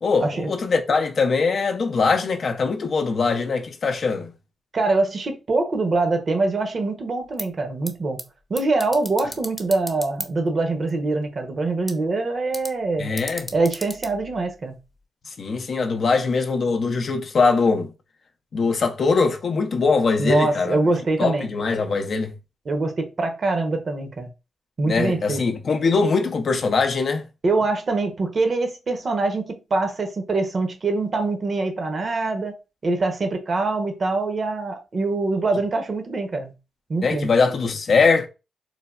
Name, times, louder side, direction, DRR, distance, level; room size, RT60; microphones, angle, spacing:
voice 1, 0.0-4.3 13.0-13.5 15.3-17.9 18.5-20.8 21.2-22.4 24.8-27.3 37.0-38.3, left 4 dB, 60° left, 0.5 m, -22 dB
voice 2, 4.7-8.2 8.5-13.1 13.5-14.8 20.2-21.5 22.7-24.3 24.8-25.4 27.4-32.5 32.8-36.5 36.9-37.3, right 3 dB, 55° right, 0.7 m, -24 dB
sound 1, 7.2-15.0, equal, ahead, 0.6 m, -39 dB
3.3 x 2.1 x 2.3 m
supercardioid pair, 50°, 0 cm